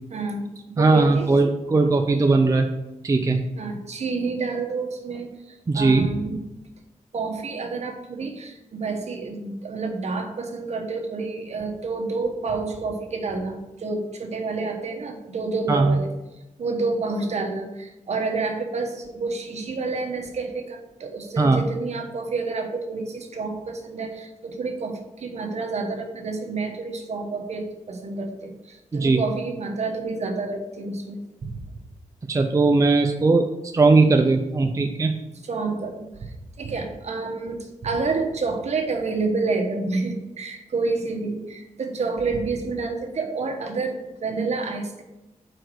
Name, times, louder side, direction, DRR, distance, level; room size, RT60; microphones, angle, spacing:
voice 1, 0.1-1.3 3.6-6.4 7.1-16.1 16.6-31.6 35.5-45.0, right 3 dB, 60° right, 2 dB, 1.1 m, -29 dB
voice 2, 0.8-2.7 3.0-3.4 5.7-6.1 15.7-16.0 21.4-21.6 28.9-29.2 32.3-35.2, right 3 dB, 25° right, 5 dB, 0.5 m, -19 dB
5.0 x 4.7 x 6.2 m, 0.98 s
wide cardioid pair, 110°, 13 cm